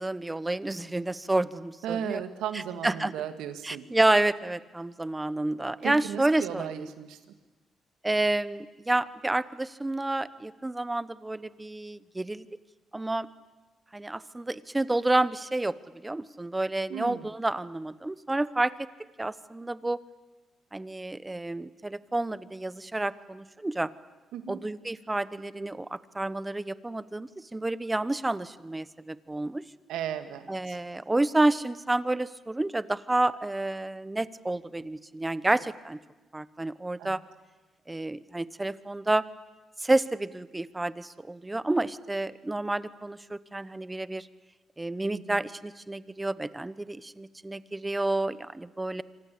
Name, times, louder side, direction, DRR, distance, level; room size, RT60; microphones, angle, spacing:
voice 1, 0.0-2.2 2.8-3.1 3.6-6.9 8.0-12.5 12.9-13.3 13.9-15.8 16.0-18.7 19.2-20.0 20.7-23.9 24.5-29.6 30.5-36.0 36.3-37.2 37.9-39.2 39.8-44.3 44.8-49.0, right 2 dB, 15° right, 16 dB, 1.1 m, -29 dB
voice 2, 1.8-3.9 5.8-7.2 16.9-17.3 24.3-24.6 29.9-30.8 37.0-37.2 45.1-45.4, right 9 dB, 90° right, 9 dB, 2.1 m, -35 dB
26.5 x 25.0 x 8.6 m, 1.2 s
cardioid pair, 90°, 0 cm